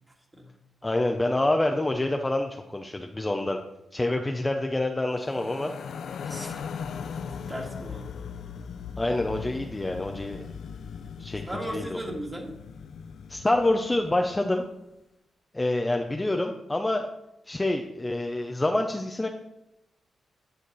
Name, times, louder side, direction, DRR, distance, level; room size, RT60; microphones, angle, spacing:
voice 1, 0.8-3.6 3.9-5.7 9.0-10.4 11.2-11.4 11.7-12.0 13.3-14.6 15.5-17.1 17.5-19.3, left 2 dB, 15° left, 3 dB, 0.6 m, -27 dB
sound 1, 5.1-14.5, left 6 dB, 70° left, 0.5 m, -39 dB
voice 2, 6.2-6.7 7.0-8.2 11.5-12.5, right 1 dB, 15° right, 0 dB, 1.7 m, -37 dB
10.0 x 6.5 x 4.1 m, 0.89 s
cardioid pair, 100°, 0 cm